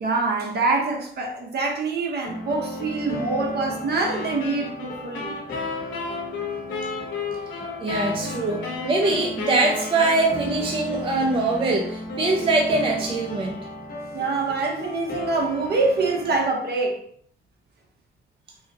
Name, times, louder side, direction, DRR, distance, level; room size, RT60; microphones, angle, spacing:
voice 1, 0.0-5.3 14.1-17.0, right 3 dB, 55° right, 0.9 m, -25 dB
sound 1, 2.2-16.5, left 1 dB, 50° left, 0.9 m, -35 dB
sound 2, 4.0-10.6, left 5 dB, 90° left, 0.8 m, -33 dB
voice 2, 7.8-13.6, right 2 dB, 25° right, 0.4 m, -23 dB
3.7 x 2.1 x 2.7 m
cardioid pair, 90°, 20 cm